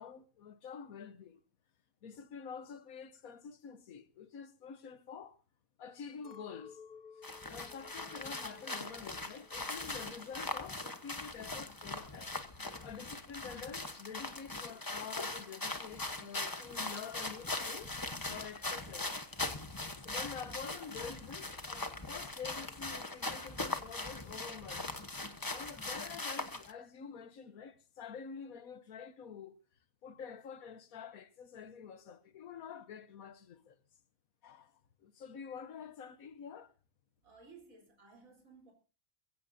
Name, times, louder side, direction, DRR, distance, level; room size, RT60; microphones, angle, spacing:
voice 1, 0.0-1.4 2.0-5.4 5.8-6.8 7.2-18.0 18.3-19.1 20.0-25.0 25.5-29.6 30.0-33.8 34.4-36.7, left 6 dB, 85° left, 1.4 m, -48 dB
Chink clink, 6.2-10.6 10.9-11.7, left 6 dB, 35° left, 1.3 m, -56 dB
sound 1, 7.2-26.7, left 2 dB, 15° left, 1.0 m, -41 dB
voice 2, 37.2-38.7, right 4 dB, 75° right, 4.3 m, -57 dB
22.0 x 16.0 x 2.7 m
omnidirectional pair, 1.4 m